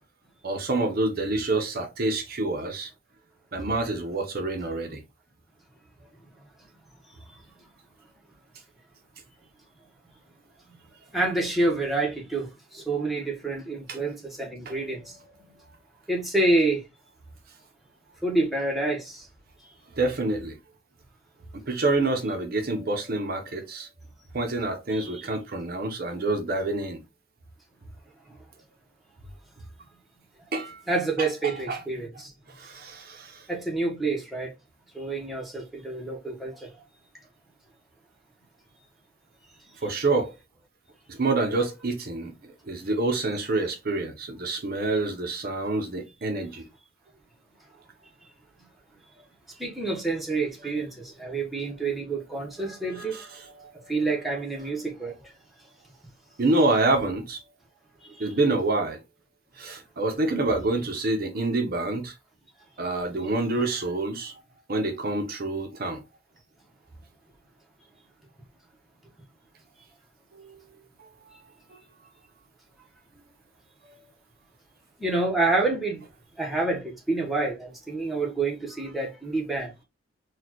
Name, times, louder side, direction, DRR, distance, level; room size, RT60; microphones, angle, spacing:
voice 1, 0.4-2.9 3.5-5.0 13.9-14.0 14.7-14.8 19.9-20.6 21.5-23.9 24.3-27.0 30.5-30.8 31.2-31.8 32.5-33.5 39.8-40.3 41.1-42.3 42.7-46.6 50.6-50.7 53.0-53.9 54.6-54.7 56.4-57.4 58.2-59.0 59.6-62.1 62.8-64.4 64.7-66.0 70.3-70.6 71.0-71.4 73.8-74.0, right 2 dB, 50° right, 0.7 m, -27 dB
voice 2, 11.1-12.5 12.7-15.0 16.1-16.8 18.2-19.2 24.9-25.2 30.9-32.3 33.5-34.5 34.9-36.7 49.6-50.9 51.2-53.2 53.9-55.1 58.2-58.3 75.0-76.0 76.4-79.7, right 2 dB, ahead, 0.9 m, -27 dB
4.1 x 2.3 x 2.9 m
head